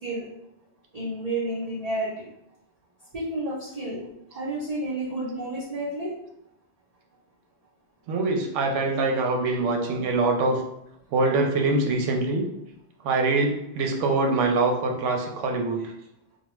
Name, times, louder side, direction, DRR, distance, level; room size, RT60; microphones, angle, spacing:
voice 1, 0.9-2.3 3.1-4.0 4.3-6.1, right 1 dB, 40° right, -9 dB, 0.6 m, -30 dB
voice 2, 8.1-10.6 11.1-12.5 13.0-15.9, right 3 dB, 80° right, 2 dB, 0.9 m, -24 dB
2.3 x 2.2 x 3.0 m, 0.79 s
omnidirectional pair, 1.2 m